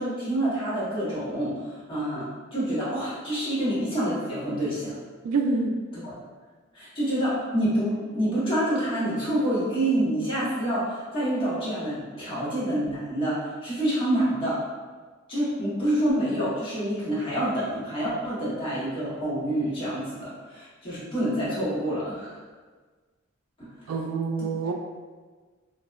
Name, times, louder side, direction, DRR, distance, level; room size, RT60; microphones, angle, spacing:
voice 1, 0.0-5.0 6.0-6.1 6.7-14.6 15.3-22.4 23.6-23.7, right 1 dB, 25° left, -9 dB, 0.9 m, -27 dB
voice 2, 5.2-5.7 23.9-24.7, right 4 dB, 85° right, 8 dB, 0.3 m, -26 dB
2.7 x 2.0 x 2.3 m, 1.4 s
head